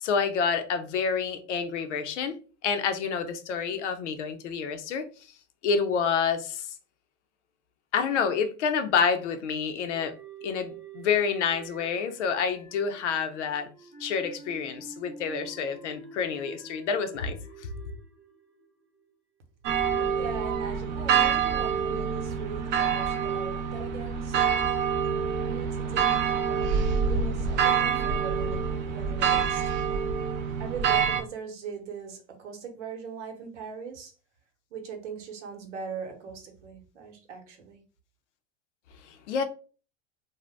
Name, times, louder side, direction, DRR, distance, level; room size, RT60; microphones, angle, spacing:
voice 1, 0.0-2.4 2.6-5.0 5.6-6.7 7.9-10.1 10.4-13.7 14.0-17.7 39.1-39.4, left 6 dB, 80° left, 0.6 m, -28 dB
sound 1, 9.9-19.1, right 4 dB, ahead, 0.9 m, -48 dB
sound 2, 19.6-31.2, right 7 dB, 35° right, 0.4 m, -26 dB
voice 2, 19.7-24.9 25.4-26.7 27.1-28.6 28.9-29.7 30.6-34.1 34.7-37.8, right 6 dB, 90° right, 0.9 m, -40 dB
2.6 x 2.1 x 3.2 m
hypercardioid pair, 115°, 35 cm